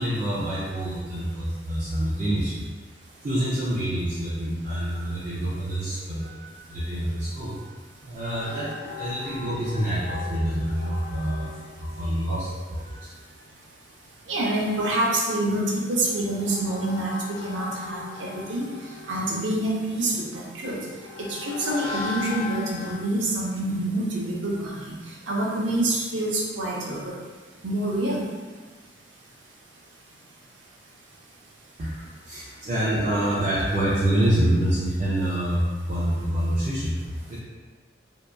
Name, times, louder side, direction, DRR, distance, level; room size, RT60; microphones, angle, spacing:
voice 1, 0.0-2.7 3.2-13.3 31.8-37.4, right 1 dB, 40° right, -7 dB, 0.4 m, -27 dB
sound 1, 8.3-13.3 15.6-22.9, left 5 dB, 5° left, 0.9 m, -39 dB
voice 2, 14.3-17.2 17.4-18.7 19.1-20.7 21.3-24.9 25.3-27.1 27.6-28.2, right 1 dB, 85° right, -4 dB, 0.6 m, -26 dB
2.8 x 2.2 x 2.2 m, 1.4 s
head